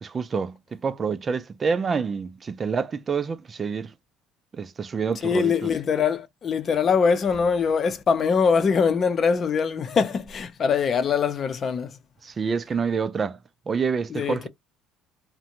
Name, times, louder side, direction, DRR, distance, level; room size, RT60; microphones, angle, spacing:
voice 1, 0.0-3.9 4.5-5.7 12.2-13.4 13.7-14.5, right 5 dB, 35° right, 0.4 m, -27 dB
voice 2, 5.2-11.9 14.1-14.5, left 6 dB, 45° left, 0.6 m, -23 dB
2.5 x 2.1 x 2.8 m
supercardioid pair, 85°, 0 cm